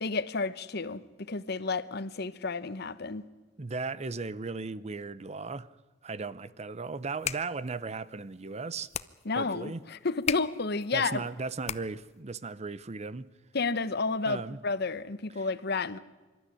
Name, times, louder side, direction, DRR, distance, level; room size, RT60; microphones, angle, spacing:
voice 1, 0.0-1.0 1.3-3.2 9.2-11.2 13.5-16.0, left 4 dB, 60° left, 1.0 m, -31 dB
voice 2, 3.6-5.7 6.0-8.9 9.3-9.8 10.9-13.3 14.2-14.6 15.4-15.5, right 4 dB, 35° right, 0.7 m, -36 dB
sound 1, 7.0-12.2, left 8 dB, 35° left, 0.7 m, -39 dB
25.5 x 12.5 x 9.9 m
head